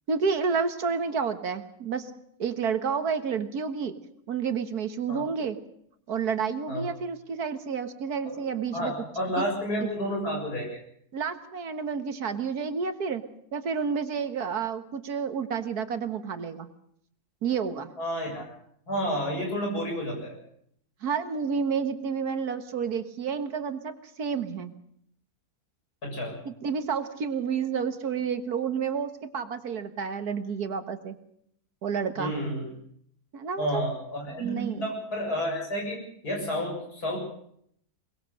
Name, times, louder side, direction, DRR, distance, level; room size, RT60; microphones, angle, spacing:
voice 1, 0.1-2.1 2.4-3.9 4.3-5.6 6.1-8.9 9.4-9.5 11.1-13.2 13.5-16.7 17.4-17.9 21.0-24.7 26.5-31.2 31.8-32.3 33.3-33.8 34.3-34.8, right 6 dB, 85° right, 9 dB, 2.0 m, -30 dB
voice 2, 8.7-10.7 18.0-18.4 18.9-20.4 26.0-26.4 32.2-32.7 33.6-37.2, equal, 90° left, 0 dB, 7.7 m, -30 dB
23.0 x 20.5 x 6.6 m, 0.69 s
omnidirectional pair, 1.6 m